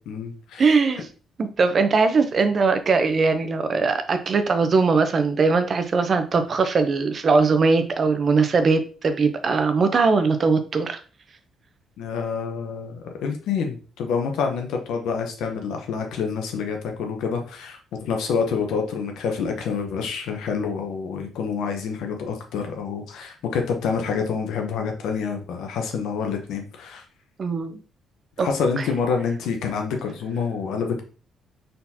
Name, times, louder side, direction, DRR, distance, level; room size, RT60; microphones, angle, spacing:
voice 1, 0.1-0.7 12.0-27.0 28.4-31.0, left 5 dB, 85° left, 4 dB, 0.9 m, -27 dB
voice 2, 0.6-1.1 1.4-11.0 27.4-27.8 28.4-28.5 28.8-28.9, right 4 dB, 45° right, 9 dB, 0.7 m, -20 dB
4.4 x 3.9 x 2.8 m, 0.36 s
cardioid pair, 90°, 0 cm